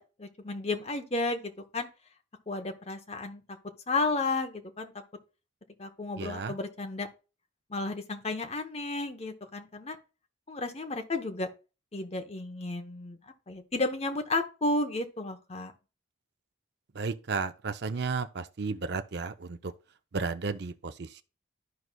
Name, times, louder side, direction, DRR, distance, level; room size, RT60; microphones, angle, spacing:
voice 1, 0.0-1.9 2.5-3.4 3.9-4.9 5.8-7.1 7.7-10.0 10.5-11.5 11.9-13.2 13.5-15.7, left 2 dB, 30° left, 0.7 m, -32 dB
voice 2, 6.2-6.5 17.0-19.7 20.1-21.2, right 4 dB, 55° right, 0.5 m, -33 dB
12.5 x 4.7 x 2.2 m
head